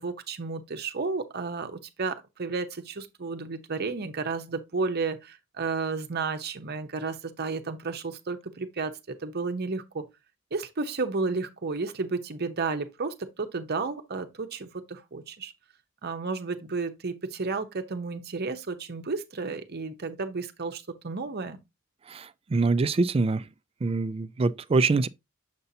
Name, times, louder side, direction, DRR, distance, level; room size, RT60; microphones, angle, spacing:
voice 1, 0.0-10.0 10.5-15.5 16.0-21.6, right 4 dB, 50° right, 0.8 m, -32 dB
voice 2, 22.1-23.4 23.8-25.1, right 3 dB, 30° right, 0.3 m, -24 dB
6.8 x 5.4 x 2.7 m
head